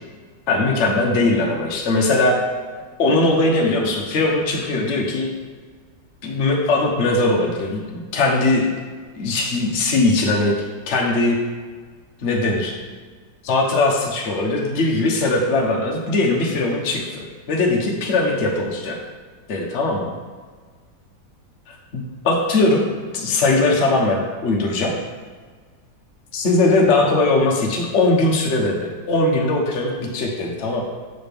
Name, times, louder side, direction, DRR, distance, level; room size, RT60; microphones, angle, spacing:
voice 1, 0.5-2.4 3.0-5.3 6.2-8.7 9.1-11.4 12.2-12.7 13.4-19.0 19.5-20.1 21.7-22.8 23.1-24.9 26.3-30.8, left 2 dB, 45° left, -1 dB, 1.1 m, -20 dB
6.7 x 6.3 x 3.5 m, 1.5 s
omnidirectional pair, 2.0 m